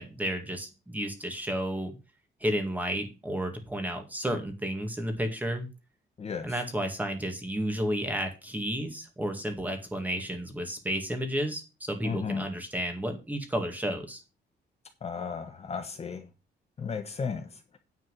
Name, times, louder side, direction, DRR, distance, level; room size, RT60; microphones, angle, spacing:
voice 1, 0.0-1.9 2.4-5.7 6.4-14.2, equal, 10° right, 2.1 m, -32 dB
voice 2, 6.2-6.5 12.0-12.4 15.0-16.2 16.8-17.5, left 5 dB, 35° left, 1.3 m, -34 dB
9.8 x 4.4 x 7.7 m
cardioid pair, 145°, 19 cm